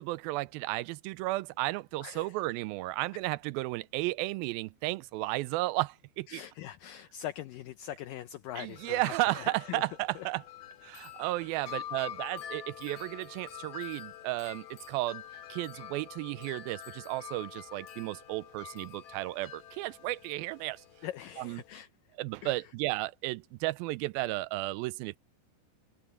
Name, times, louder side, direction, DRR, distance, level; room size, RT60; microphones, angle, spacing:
voice 1, 0.0-6.4 8.6-10.4 10.8-15.2 15.5-20.8 21.4-21.6 22.2-25.2, right 19 dB, 80° right, 2.2 m, -34 dB
voice 2, 2.0-2.4 6.3-9.8 10.2-10.3 21.0-21.9 22.4-22.6, left 12 dB, 75° left, 2.1 m, -42 dB
Wind chime, 8.5-21.8, left 10 dB, 50° left, 3.1 m, -47 dB
omnidirectional pair, 4.6 m